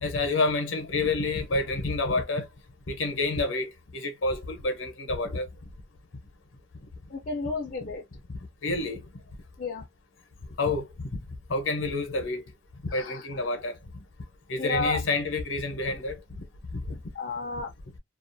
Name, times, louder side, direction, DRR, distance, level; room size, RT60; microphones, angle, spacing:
voice 1, 0.0-2.5 2.9-5.5 7.8-7.9 8.3-9.0 10.6-11.1 11.5-12.4 12.9-13.8 14.5-16.2 16.7-17.0, left 3 dB, 75° left, 0.7 m, -28 dB
voice 2, 7.1-8.0 9.6-9.9 12.9-13.3 14.6-15.0 17.1-17.7, left 3 dB, 45° left, 0.5 m, -32 dB
2.3 x 2.3 x 2.5 m
head